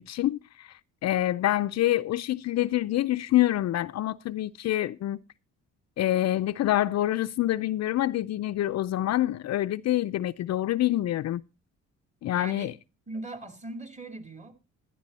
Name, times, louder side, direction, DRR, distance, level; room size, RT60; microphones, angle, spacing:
voice 1, 0.0-5.2 6.0-11.4 12.2-12.7, left 14 dB, 60° left, 0.5 m, -26 dB
voice 2, 12.3-12.7 13.1-14.5, right 2 dB, 25° right, 2.4 m, -39 dB
11.5 x 11.0 x 4.1 m
cardioid pair, 90°, 30 cm